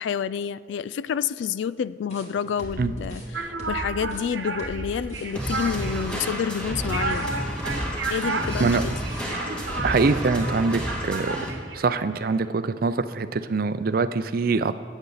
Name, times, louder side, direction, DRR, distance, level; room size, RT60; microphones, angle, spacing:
voice 1, 0.0-7.3 8.1-9.0, left 7 dB, 80° left, 17 dB, 0.3 m, -29 dB
sound 1, 2.1-10.0, equal, 40° left, 2.6 m, -38 dB
sound 2, 3.3-12.5, right 3 dB, 85° right, 1.1 m, -33 dB
sound 3, 5.4-11.5, equal, 5° left, 1.8 m, -31 dB
voice 2, 9.8-11.5 11.7-14.7, right 4 dB, 55° right, 13 dB, 0.5 m, -24 dB
23.5 x 8.1 x 4.0 m, 2.1 s
head